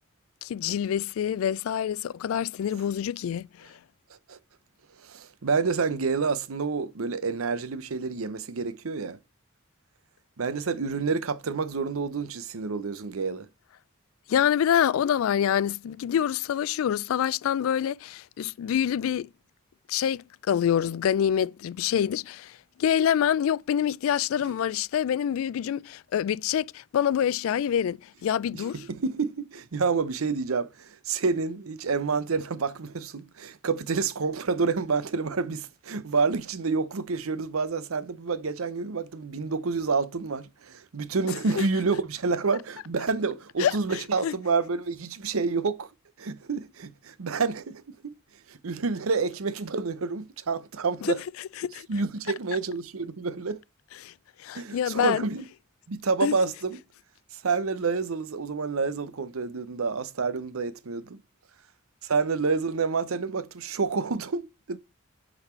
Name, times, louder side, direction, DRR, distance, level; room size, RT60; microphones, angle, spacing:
voice 1, 0.4-3.5 14.3-19.3 19.9-22.5 22.8-28.7 43.6-43.7 44.2-44.3 51.0-51.1 51.6-51.9 54.0-54.1 54.4-55.2 56.2-56.3, left 9 dB, 75° left, 0.3 m, -26 dB
voice 2, 5.0-9.2 10.4-13.5 28.5-45.9 46.2-48.1 48.5-51.2 51.9-53.6 54.5-55.5 55.9-56.8 57.3-61.2 62.0-64.4 64.7-64.8, right 4 dB, 80° right, 0.7 m, -28 dB
8.7 x 4.1 x 4.3 m
head